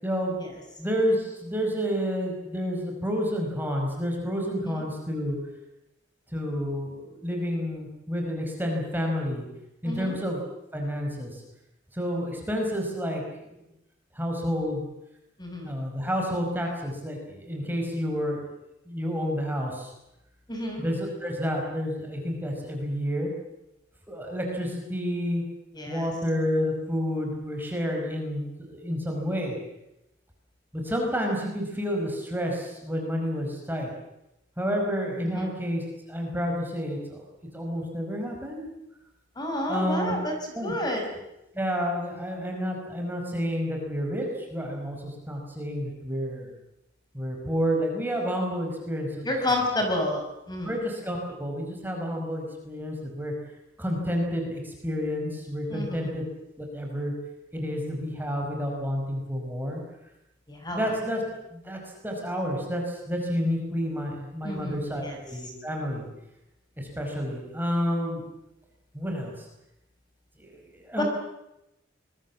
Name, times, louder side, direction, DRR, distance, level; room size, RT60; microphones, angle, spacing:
voice 1, 0.0-0.5 0.8-5.4 6.3-9.4 9.8-10.4 10.7-11.3 12.0-13.2 14.2-14.8 15.6-18.4 18.9-19.9 20.8-23.3 24.1-25.4 25.9-29.6 30.7-33.9 34.6-35.8 36.1-37.2 37.5-38.6 39.7-40.1 40.5-40.7 41.6-44.3 44.5-46.5 47.1-49.3 50.6-53.3 53.8-56.2 56.6-57.1 57.5-59.8 60.7-61.2 61.5-66.0 66.8-68.2 68.9-69.3 70.4-70.5 70.9-71.0, equal, 10° right, 1 dB, 5.4 m, -29 dB
voice 2, 9.8-10.2 15.4-15.7 20.5-20.8 25.7-26.1 35.2-35.5 39.4-40.3 40.6-41.1 49.2-50.8 55.7-56.1 60.5-60.9 64.4-65.2 71.0-71.1, left 1 dB, 20° left, 2 dB, 5.8 m, -30 dB
25.5 x 22.0 x 7.5 m, 0.88 s
head